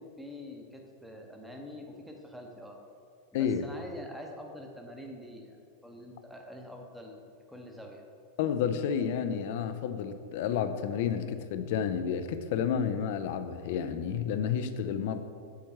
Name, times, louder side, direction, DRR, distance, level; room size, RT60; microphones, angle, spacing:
voice 1, 0.0-2.8 3.3-5.6 5.8-7.2 7.5-8.0, left 1 dB, ahead, 1 dB, 1.0 m, -45 dB
voice 2, 3.3-3.7 8.4-15.2, left 8 dB, 50° left, 9 dB, 0.5 m, -30 dB
7.2 x 4.6 x 5.6 m, 2.3 s
figure-of-eight pair, 90°, 0 cm